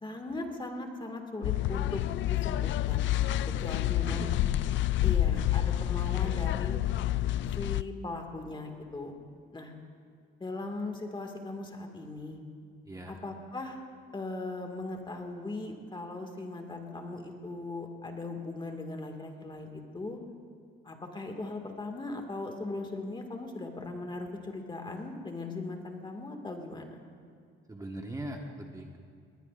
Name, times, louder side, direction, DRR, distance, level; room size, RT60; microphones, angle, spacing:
voice 1, 0.0-4.3 5.0-6.8 7.6-9.1 9.5-9.7 10.4-12.4 13.1-13.8 14.1-20.2 20.8-27.0, left 2 dB, 25° left, 3 dB, 2.0 m, -39 dB
sound 1, 1.4-7.8, left 13 dB, 70° left, 0.4 m, -28 dB
voice 2, 4.0-4.5 12.8-13.2 27.7-29.0, right 1 dB, 15° right, 1 dB, 1.4 m, -40 dB
20.5 x 19.5 x 2.5 m, 2.3 s
cardioid pair, 90°, 20 cm